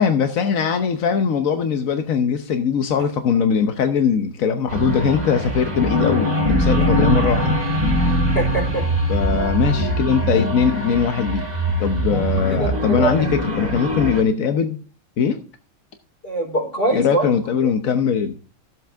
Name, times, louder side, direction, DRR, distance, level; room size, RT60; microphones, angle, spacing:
voice 1, 0.0-7.6 9.1-11.5 11.8-14.8 15.2-15.4 16.9-18.3, left 6 dB, 55° left, 7 dB, 1.0 m, -20 dB
sound 1, 4.7-14.2, equal, 20° right, 2.3 m, -22 dB
voice 2, 8.3-8.8 12.6-13.4 16.2-17.3 17.6-17.7, right 2 dB, 25° left, 0 dB, 4.8 m, -23 dB
15.0 x 7.8 x 3.4 m, 0.36 s
omnidirectional pair, 2.3 m